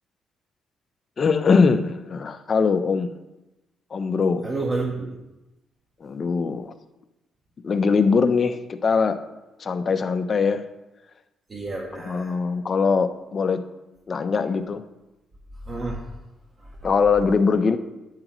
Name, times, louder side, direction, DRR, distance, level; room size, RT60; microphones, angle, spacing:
voice 1, 1.2-3.1 3.9-4.5 6.0-6.8 7.6-9.2 9.6-10.6 11.9-13.6 14.1-14.8 16.8-17.8, left 5 dB, 40° left, 8 dB, 0.7 m, -22 dB
voice 2, 4.4-5.1 11.5-12.3 15.7-16.1 16.6-16.7, right 3 dB, 30° right, -1 dB, 1.3 m, -29 dB
10.5 x 8.9 x 3.1 m, 1.0 s
cardioid pair, 90°, 0 cm